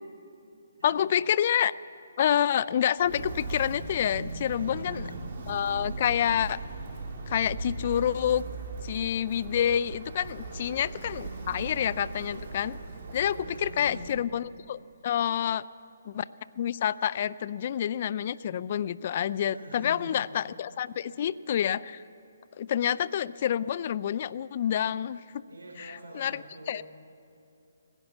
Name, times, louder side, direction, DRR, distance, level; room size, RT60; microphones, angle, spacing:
voice 1, 0.8-1.7 2.2-5.0 5.5-6.6 7.3-8.4 8.8-12.8 13.1-15.6 16.1-16.3 16.6-22.0 22.6-25.4 25.8-26.8, left 9 dB, 45° left, 19 dB, 0.3 m, -28 dB
Walk footsteps, 3.0-14.3, right 3 dB, 45° right, 2.2 m, -39 dB
voice 2, 4.5-5.2 13.3-14.0 19.5-20.1 25.5-26.8, right 1 dB, 80° right, 0 dB, 4.7 m, -44 dB
18.0 x 11.0 x 7.2 m, 2.7 s
hypercardioid pair, 150°, 0 cm